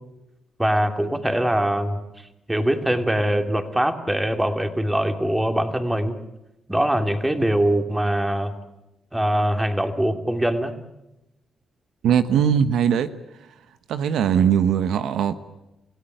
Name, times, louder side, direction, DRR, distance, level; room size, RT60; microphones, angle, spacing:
voice 1, 0.6-2.0 2.5-6.2 6.7-8.5 9.1-10.7, right 1 dB, 10° right, 6 dB, 2.9 m, -22 dB
voice 2, 12.0-13.1 13.9-15.4, right 8 dB, 85° right, 11 dB, 1.1 m, -20 dB
29.0 x 16.5 x 9.2 m, 0.94 s
cardioid pair, 80°, 0 cm